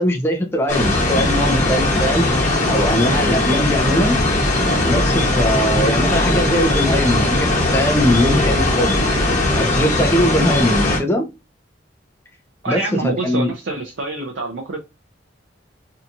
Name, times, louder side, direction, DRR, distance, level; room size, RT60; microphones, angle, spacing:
voice 1, 0.0-4.2 4.8-7.4 7.7-9.1 9.5-11.3 12.7-12.8 13.2-13.5, equal, 15° left, 0.5 m, -20 dB
sound 1, 0.7-11.0, left 2 dB, 40° left, 1.1 m, -18 dB
voice 2, 12.6-14.8, right 2 dB, 75° right, 0.5 m, -26 dB
2.7 x 2.3 x 2.6 m
head